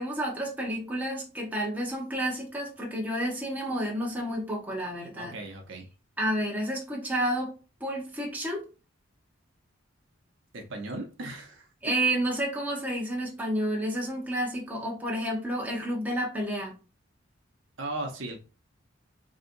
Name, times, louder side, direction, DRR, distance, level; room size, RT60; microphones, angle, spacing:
voice 1, 0.0-5.3 6.2-8.6 11.8-16.7, right 1 dB, 10° right, 0.9 m, -30 dB
voice 2, 5.1-5.8 10.5-11.7 17.8-18.4, right 2 dB, 70° right, 0.8 m, -37 dB
4.0 x 2.8 x 2.6 m
head